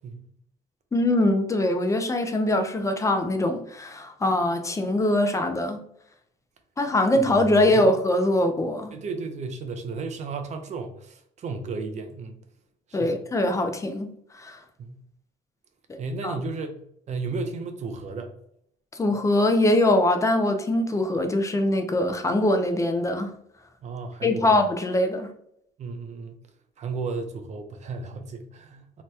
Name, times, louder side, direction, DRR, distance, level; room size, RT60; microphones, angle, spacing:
voice 1, 0.9-5.8 6.8-8.9 12.9-14.1 14.3-14.6 15.9-16.4 19.0-23.3 24.2-25.3, left 1 dB, 20° left, 0.4 m, -23 dB
voice 2, 8.9-12.4 12.9-13.2 14.8-15.0 16.0-16.8 17.1-18.3 23.8-24.5 25.8-26.4 26.8-29.0, right 4 dB, 45° right, 0.5 m, -34 dB
2.8 x 2.2 x 3.2 m
cardioid pair, 110°, 17 cm